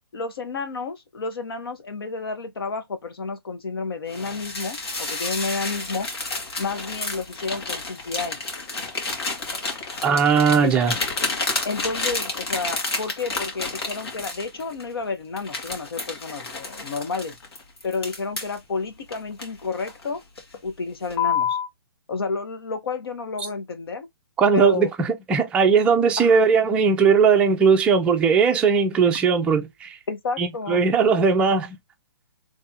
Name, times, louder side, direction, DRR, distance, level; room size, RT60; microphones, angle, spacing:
voice 1, 0.1-6.1 6.6-8.4 10.6-10.7 11.6-17.4 17.8-20.2 20.6-21.6 22.1-24.1 24.5-24.9 26.2-26.4 30.1-30.8, left 4 dB, 70° left, 1.2 m, -30 dB
sound 1, 4.1-14.9 15.4-18.6 19.1-20.0 20.4-20.7 21.1-21.7, left 4 dB, 90° left, 1.9 m, -30 dB
voice 2, 10.0-11.0 24.4-30.0 30.4-31.8, right 5 dB, 10° right, 0.4 m, -19 dB
3.4 x 3.3 x 2.8 m
hypercardioid pair, 155°, 13 cm